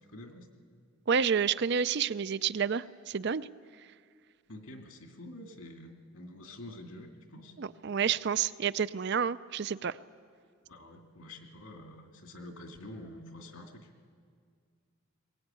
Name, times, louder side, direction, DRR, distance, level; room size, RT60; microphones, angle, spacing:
voice 1, 0.1-0.5 4.5-7.5 10.7-13.9, left 1 dB, 75° left, 3 dB, 2.5 m, -47 dB
voice 2, 1.1-3.5 7.6-10.0, right 6 dB, 50° right, 16 dB, 0.5 m, -29 dB
21.5 x 19.0 x 9.0 m, 2.1 s
head